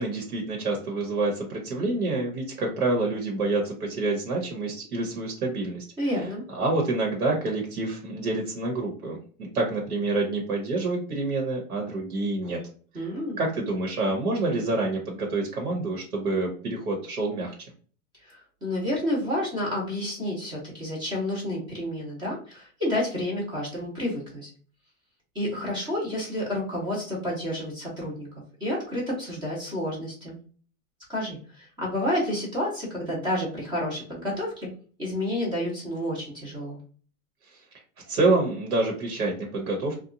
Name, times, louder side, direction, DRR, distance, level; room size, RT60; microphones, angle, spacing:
voice 1, 0.0-6.1 6.5-12.6 12.9-13.1 13.4-17.5 37.5-37.6 38.1-40.0, right 2 dB, 85° right, 1 dB, 1.1 m, -27 dB
voice 2, 6.0-6.4 12.9-13.4 18.2-24.5 25.3-28.3 28.6-30.3 31.1-34.7 35.0-36.8, left 1 dB, 10° right, -4 dB, 0.7 m, -30 dB
2.8 x 2.3 x 2.5 m, 0.43 s
hypercardioid pair, 150°, 43 cm